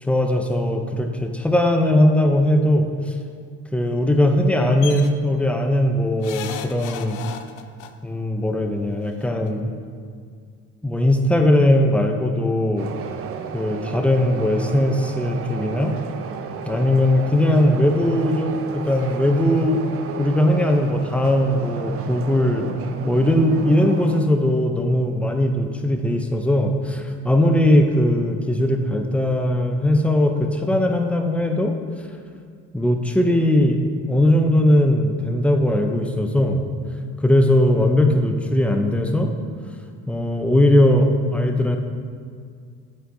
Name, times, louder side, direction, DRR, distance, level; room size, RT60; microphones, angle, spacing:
voice 1, 0.0-3.1 3.7-7.2 8.0-9.7 10.8-12.9 13.5-15.9 16.6-19.8 20.2-22.7 23.1-31.8 32.7-33.8 34.1-36.7 37.2-39.3 40.1-41.8, left 1 dB, 5° left, 4 dB, 0.5 m, -19 dB
sound 1, 4.8-5.1 6.2-7.9 9.1-9.2 9.5-9.6, left 9 dB, 80° left, 0.5 m, -34 dB
sound 2, 12.8-24.2, right 6 dB, 50° right, 0.5 m, -33 dB
8.0 x 4.4 x 2.6 m, 2.1 s
cardioid pair, 90°, 30 cm